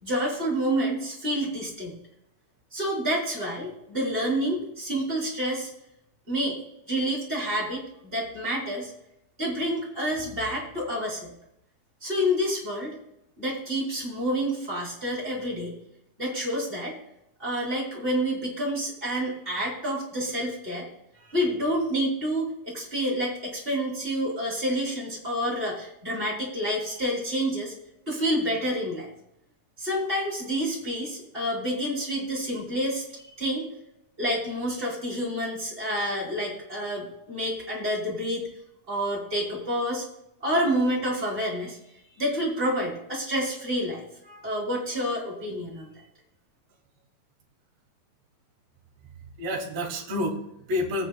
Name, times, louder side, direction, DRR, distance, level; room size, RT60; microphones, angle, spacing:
voice 1, 0.0-2.0 2.7-5.7 6.3-6.6 6.9-8.9 9.4-11.3 12.0-13.0 13.4-15.7 16.2-17.0 17.4-20.9 21.3-27.7 28.1-29.1 29.8-33.0 33.4-33.7 34.2-38.4 38.9-40.0 40.4-41.8 42.2-45.9, equal, 15° right, -4 dB, 3.3 m, -28 dB
voice 2, 49.0-51.1, left 1 dB, 55° right, -2 dB, 2.7 m, -30 dB
19.5 x 9.0 x 2.3 m, 0.82 s
omnidirectional pair, 3.9 m